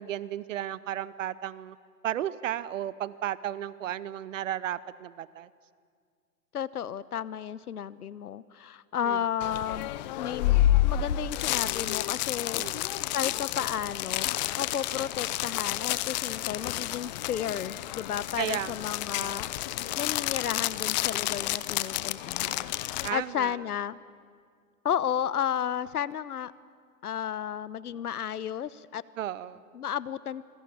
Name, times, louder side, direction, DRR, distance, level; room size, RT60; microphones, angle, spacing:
voice 1, 0.0-1.8 2.0-5.5 9.0-9.2 12.5-12.8 18.4-18.8 19.1-19.4 23.0-23.6 29.2-29.6, right 11 dB, 55° right, 18 dB, 1.0 m, -34 dB
voice 2, 6.5-10.6 10.8-12.6 13.1-14.3 14.6-24.0 24.8-26.5 27.0-29.0 29.7-30.5, left 9 dB, 70° left, 18 dB, 1.1 m, -33 dB
sound 1, 9.4-23.1, left 14 dB, 30° left, 0.7 m, -30 dB
26.5 x 22.5 x 8.6 m, 2.1 s
hypercardioid pair, 125°, 47 cm